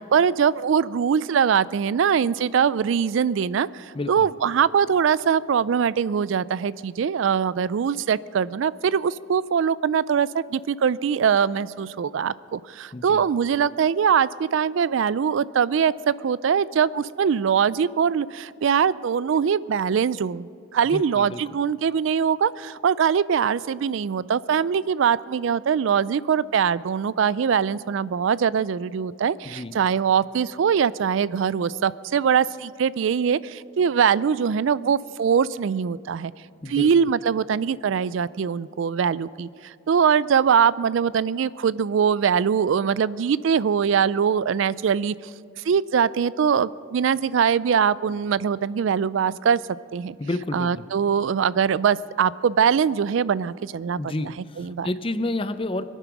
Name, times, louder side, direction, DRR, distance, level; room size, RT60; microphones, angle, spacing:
voice 1, 0.0-36.3 36.7-45.1 45.6-49.6 49.9-50.2 50.5-54.1 54.6-54.9, right 7 dB, 70° right, 19 dB, 0.3 m, -22 dB
voice 2, 3.9-4.3 12.9-13.2 20.9-21.4 29.4-29.7 36.6-36.9 50.2-50.8 54.0-55.8, left 2 dB, 25° left, 12 dB, 0.5 m, -30 dB
24.0 x 9.2 x 6.1 m, 2.5 s
head